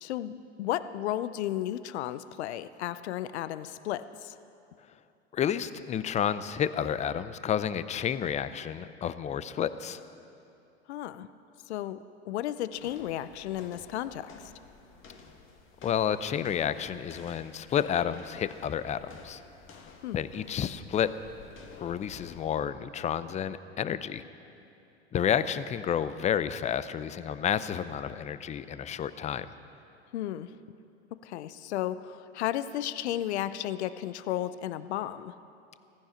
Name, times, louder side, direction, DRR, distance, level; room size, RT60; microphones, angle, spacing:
voice 1, 0.0-4.4 10.9-11.3 11.7-14.5 20.0-20.2 30.1-30.5 31.2-35.3, left 12 dB, 75° left, 14 dB, 0.7 m, -34 dB
voice 2, 5.3-10.1 15.8-19.4 20.1-21.1 21.8-24.2 25.1-29.5, left 9 dB, 20° left, 14 dB, 0.5 m, -30 dB
sound 1, 12.7-22.7, left 4 dB, 35° left, 2.1 m, -52 dB
16.5 x 15.0 x 5.8 m, 2.7 s
hypercardioid pair, 100°, 34 cm